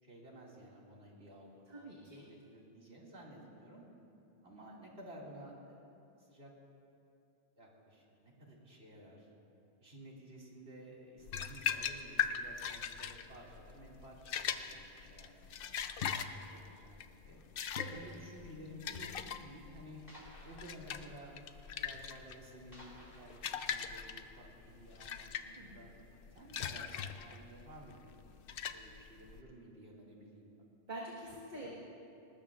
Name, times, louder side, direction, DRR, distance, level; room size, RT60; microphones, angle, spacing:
voice 1, 0.0-3.9 4.4-5.8 6.2-6.5 7.6-9.3 9.8-15.8 16.3-17.4 17.9-19.1 19.4-20.0 20.4-21.4 21.8-25.9 26.3-28.1 28.7-30.5 31.3-31.8, right 1 dB, 80° right, -4 dB, 2.6 m, -54 dB
voice 2, 1.7-2.2 17.7-18.0 25.5-25.8 30.9-31.8, right 1 dB, 45° right, -5 dB, 1.6 m, -46 dB
sound 1, 11.2-29.4, left 7 dB, 65° left, 0.8 m, -40 dB
sound 2, 20.1-24.8, left 1 dB, 40° left, 3.3 m, -60 dB
20.0 x 20.0 x 2.5 m, 2.7 s
omnidirectional pair, 1.0 m